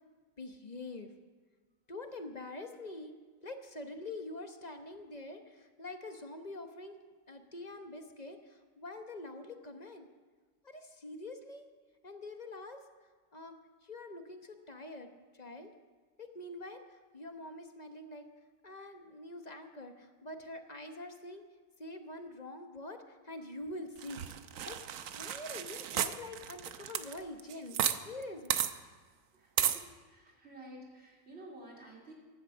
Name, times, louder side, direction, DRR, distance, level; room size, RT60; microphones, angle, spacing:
voice 1, 0.4-1.1 1.9-3.1 3.4-7.0 7.3-10.1 10.6-11.6 12.0-12.8 13.3-13.6 13.9-15.1 15.4-15.7 16.2-16.8 17.1-18.2 18.6-21.4 21.8-23.0 23.2-24.2 24.6-24.8 25.1-27.8 28.0-28.5, left 2 dB, 35° left, 6 dB, 1.1 m, -45 dB
sound 1, 24.0-28.0 28.2-28.3 28.5-28.7 29.6-29.8, right 9 dB, 75° right, 1.1 m, -33 dB
voice 2, 29.6-32.1, right 1 dB, 50° right, -2 dB, 3.4 m, -51 dB
15.5 x 11.5 x 6.2 m, 1.4 s
omnidirectional pair, 1.4 m